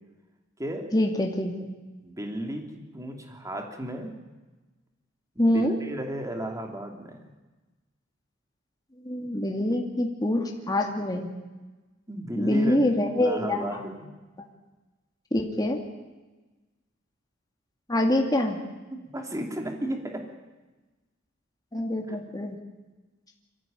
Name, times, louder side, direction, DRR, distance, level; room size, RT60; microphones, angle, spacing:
voice 1, 0.9-1.5 5.4-5.8 9.0-11.3 12.4-13.9 15.3-15.8 17.9-18.6 21.7-22.6, left 1 dB, 20° left, 1 dB, 2.4 m, -25 dB
voice 2, 2.0-4.1 5.3-7.3 12.1-12.8 13.2-14.1 18.9-20.3 22.1-22.2, right 1 dB, 15° right, 3 dB, 2.9 m, -34 dB
24.5 x 14.5 x 9.1 m, 1.2 s
head